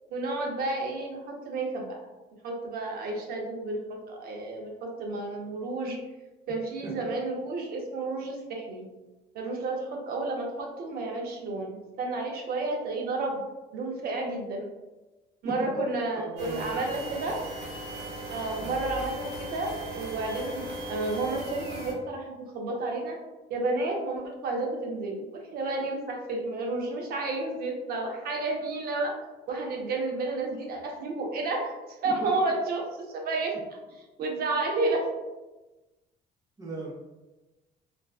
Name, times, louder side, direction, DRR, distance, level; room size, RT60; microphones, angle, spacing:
voice 1, 0.1-2.0 2.4-6.0 6.5-8.8 9.3-13.4 13.7-14.7 15.4-17.4 18.3-23.2 23.5-29.2 29.5-33.5 34.2-35.0, right 2 dB, 65° right, 1 dB, 0.6 m, -31 dB
voice 2, 16.1-17.3 18.5-18.8 32.0-32.1 36.6-36.9, right 2 dB, 20° right, -4 dB, 0.6 m, -38 dB
sound 1, 16.4-21.9, right 1 dB, 85° right, 1.0 m, -38 dB
2.5 x 2.1 x 2.3 m, 1.1 s
cardioid pair, 110°, 17 cm